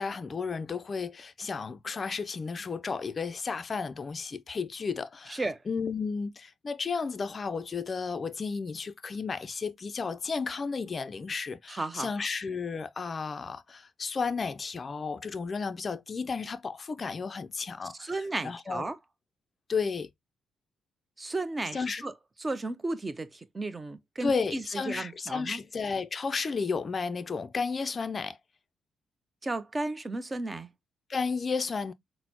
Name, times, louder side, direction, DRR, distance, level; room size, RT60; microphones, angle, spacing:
voice 1, 0.0-18.9 19.7-20.1 21.7-22.0 24.2-28.4 31.1-31.9, left 5 dB, 35° left, 0.4 m, -33 dB
voice 2, 11.7-12.1 18.0-19.0 21.2-22.1 22.4-25.6 29.4-30.7, right 2 dB, 20° right, 0.5 m, -34 dB
4.0 x 2.0 x 2.8 m
cardioid pair, 90°, 0 cm